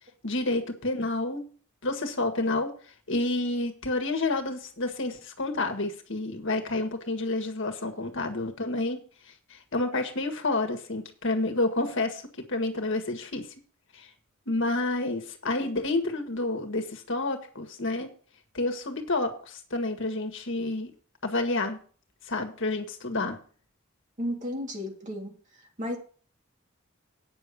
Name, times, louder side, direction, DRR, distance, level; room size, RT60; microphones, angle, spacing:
voice 1, 0.2-1.4 1.8-2.7 3.1-9.0 9.5-12.2 12.5-13.5 13.9-14.1 14.5-18.1 18.5-20.9 21.2-21.8 22.3-23.4, left 2 dB, 65° left, 5 dB, 1.7 m, -29 dB
voice 2, 24.2-25.4 25.8-26.0, equal, 40° right, 0 dB, 3.2 m, -33 dB
9.3 x 6.7 x 6.9 m, 0.42 s
head